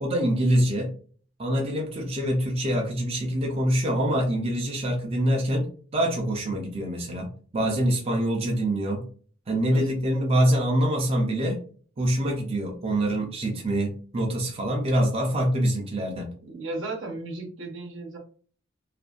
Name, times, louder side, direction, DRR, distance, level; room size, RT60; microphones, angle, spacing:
voice 1, 0.0-0.9 1.4-9.1 9.5-11.6 12.0-16.3, right 1 dB, 30° right, 0 dB, 0.5 m, -25 dB
voice 2, 16.5-18.2, right 2 dB, 75° right, 1 dB, 0.8 m, -35 dB
2.6 x 2.5 x 2.3 m, 0.43 s
head